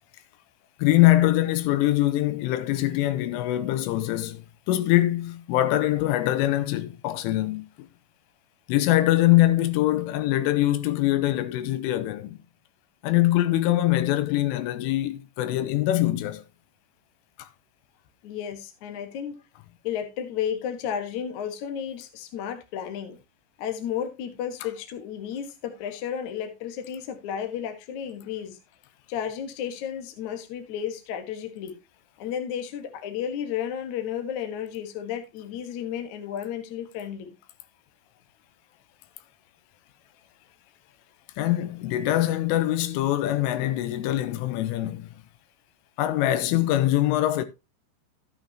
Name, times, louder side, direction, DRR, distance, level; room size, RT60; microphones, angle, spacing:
voice 1, 0.8-7.9 8.7-12.4 13.0-16.4 17.4-17.5 41.4-45.1 46.0-47.5, left 15 dB, 85° left, 3.4 m, -23 dB
voice 2, 18.2-19.3 19.8-23.2 23.6-28.6 29.1-31.8 32.2-37.3, left 9 dB, 65° left, 1.9 m, -33 dB
13.0 x 8.6 x 2.9 m
omnidirectional pair, 5.7 m